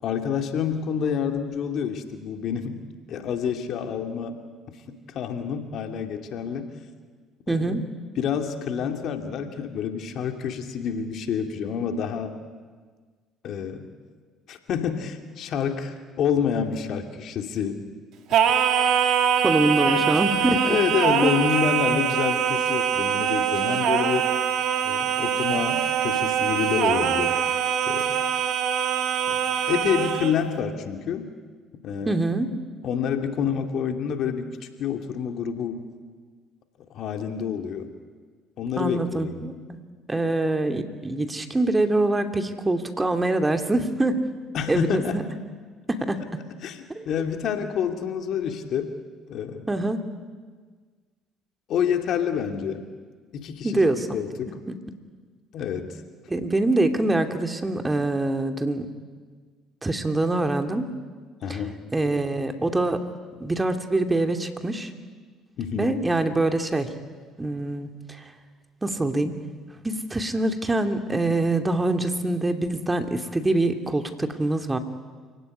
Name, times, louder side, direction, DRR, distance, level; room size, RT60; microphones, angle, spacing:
voice 1, 0.0-2.8 3.1-4.4 4.9-6.7 7.5-7.8 8.2-12.3 13.4-13.9 14.5-17.8 19.8-20.1 20.6-24.3 24.8-27.4 27.8-28.1 29.3-29.4 29.7-31.2 31.8-32.2 32.8-34.5 34.8-35.8 36.9-37.9 38.6-39.4 44.5-45.2 46.6-48.9 49.3-49.7 51.7-52.9 53.3-54.5 55.5-56.0 61.4-61.8 65.6-65.9, left 7 dB, 60° left, 5 dB, 2.7 m, -28 dB
voice 2, 7.5-7.9 19.4-20.8 21.2-21.3 32.1-32.6 38.8-44.2 44.7-45.2 45.9-46.3 47.0-47.1 49.7-50.0 53.6-54.2 54.7-54.8 56.3-58.9 59.8-60.9 61.5-61.6 61.9-63.1 63.4-64.9 65.8-66.9 67.4-68.2 68.8-69.4 69.8-74.8, right 2 dB, 20° right, 6 dB, 2.7 m, -24 dB
Singing, 18.3-30.4, right 8 dB, 65° right, 2.2 m, -23 dB
28.0 x 17.5 x 9.9 m, 1.5 s
hypercardioid pair, 65°, 0 cm